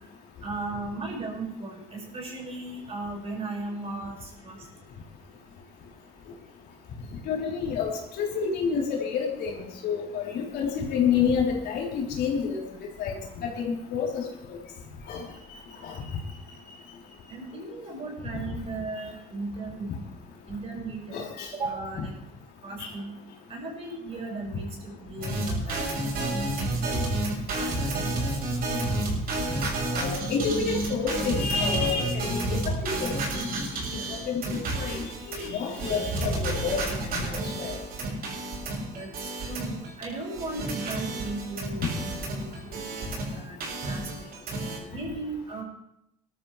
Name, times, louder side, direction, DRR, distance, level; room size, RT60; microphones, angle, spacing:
voice 1, 0.4-4.6 17.3-19.9 20.5-21.2 21.5-22.1 22.6-23.1 23.5-25.8 26.1-27.2 27.5-28.2 38.9-42.9 43.3-44.3 44.9-45.6, right 3 dB, 35° right, -1 dB, 5.8 m, -36 dB
voice 2, 7.3-12.6 13.0-13.2 13.6-14.2 15.1-15.2 15.8-15.9 21.1-21.5 22.8-22.9 29.9-33.1 33.9-37.8, left 6 dB, 75° left, -2 dB, 3.7 m, -29 dB
sound 1, 25.2-40.0 40.3-43.3 43.6-44.8, right 2 dB, 65° right, 7.1 m, -30 dB
20.0 x 12.5 x 3.3 m, 0.80 s
cardioid pair, 110°, 17 cm